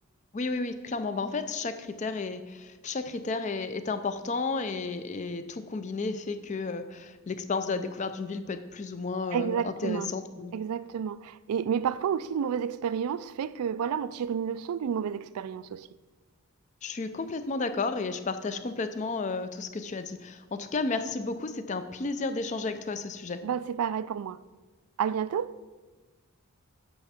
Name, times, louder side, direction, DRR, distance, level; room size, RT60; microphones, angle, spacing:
voice 1, 0.3-10.5 16.8-23.4, left 3 dB, 35° left, 0.4 m, -32 dB
voice 2, 9.3-10.1 10.5-15.9 23.4-24.4 25.0-25.6, right 8 dB, 85° right, 0.3 m, -30 dB
8.6 x 5.9 x 4.2 m
head